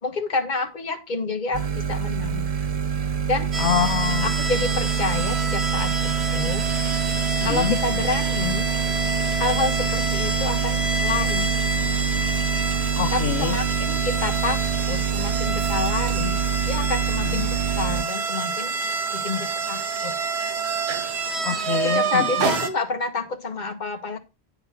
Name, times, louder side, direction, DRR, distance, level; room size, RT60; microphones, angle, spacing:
voice 1, 0.0-2.5 3.3-3.5 4.2-6.7 7.4-8.7 9.4-11.5 13.1-16.4 16.7-18.8 19.1-20.2 21.8-24.2, left 3 dB, 45° left, 1.4 m, -28 dB
sound 1, 1.5-18.0, right 7 dB, 45° right, 0.5 m, -26 dB
sound 2, 3.5-22.7, right 3 dB, 80° right, 1.3 m, -28 dB
voice 2, 3.6-4.4 7.4-7.8 12.9-13.6 17.2-17.5 21.4-22.3, left 9 dB, 90° left, 0.9 m, -25 dB
sound 3, 15.6-16.7 16.9-17.0 17.4-17.5, right 3 dB, 65° right, 2.0 m, -47 dB
9.5 x 3.9 x 5.7 m
omnidirectional pair, 1.1 m